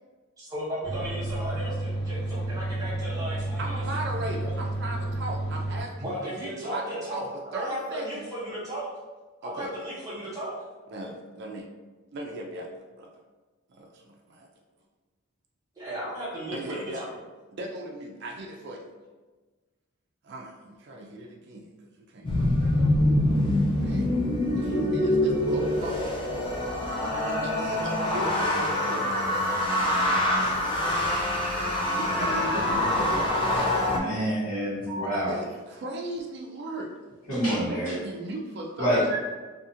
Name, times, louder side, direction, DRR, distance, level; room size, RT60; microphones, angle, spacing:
voice 1, 0.4-3.8 4.4-4.5 6.0-7.2 7.5-8.9 9.4-10.5 15.8-17.0, right 1 dB, 15° right, -8 dB, 1.0 m, -35 dB
sound 1, 0.8-5.8, right 1 dB, 60° left, 1.2 m, -31 dB
voice 2, 3.6-8.3 9.4-9.7 10.9-11.7 12.1-13.1 13.7-14.5 16.5-17.1 17.5-18.9 20.2-21.7 22.0-23.2 23.8-24.1 24.6-26.0 26.6-26.9 27.3-30.0 31.9-33.9 35.3-37.0 37.7-39.2, right 1 dB, 50° right, 0 dB, 0.4 m, -37 dB
sound 2, 22.2-34.0, left 1 dB, 25° left, 0.4 m, -25 dB
sound 3, 26.5-29.3 30.4-33.0, left 1 dB, 40° left, 0.8 m, -37 dB
voice 3, 33.9-35.3 37.3-37.9 38.8-39.2, equal, 85° left, -13 dB, 1.2 m, -27 dB
2.5 x 2.4 x 2.7 m, 1.3 s
head